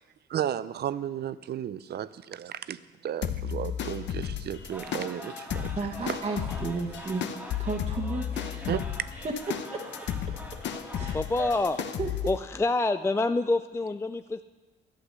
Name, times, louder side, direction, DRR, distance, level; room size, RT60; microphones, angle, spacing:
voice 1, 0.3-5.7 6.1-6.2 8.7-8.8, right 10 dB, 55° right, 16 dB, 0.5 m, -33 dB
sound 1, 3.2-12.4, left 9 dB, 65° left, 0.9 m, -34 dB
sound 2, 4.7-11.8, equal, 5° right, 1.7 m, -45 dB
voice 2, 5.7-7.3 7.6-8.8 9.2-9.8 10.9-11.5 12.0-12.1, right 3 dB, 35° right, 1 dB, 1.3 m, -33 dB
voice 3, 11.1-11.8 12.3-14.4, left 2 dB, 15° left, 9 dB, 0.3 m, -27 dB
11.5 x 8.2 x 6.7 m, 1.2 s
cardioid pair, 90°, 20 cm